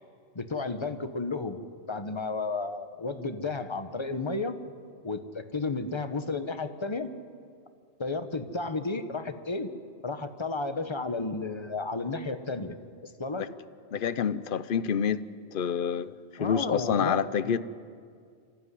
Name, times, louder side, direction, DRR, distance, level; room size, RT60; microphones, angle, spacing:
voice 1, 0.3-1.6 1.9-4.6 5.0-7.1 8.0-9.7 10.0-12.8 13.0-13.4 16.4-17.6, left 3 dB, 20° left, 9 dB, 1.1 m, -32 dB
voice 2, 13.9-15.2 15.5-17.6, left 7 dB, 50° left, 15 dB, 0.8 m, -28 dB
26.0 x 15.0 x 9.8 m, 2.2 s
omnidirectional pair, 1.4 m